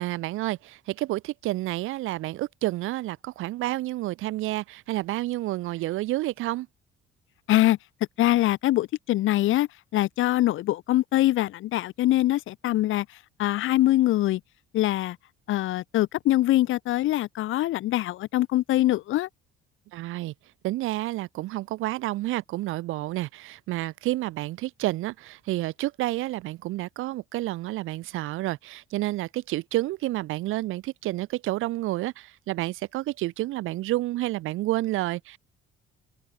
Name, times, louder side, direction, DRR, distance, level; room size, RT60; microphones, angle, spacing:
voice 1, 0.0-6.7 19.9-20.3 20.6-35.4, right 17 dB, 70° right, 0.8 m, -30 dB
voice 2, 8.2-13.1 13.4-14.4 14.7-15.2 15.5-19.3, left 15 dB, 70° left, 2.3 m, -23 dB
open air
cardioid pair, 150°, 21 cm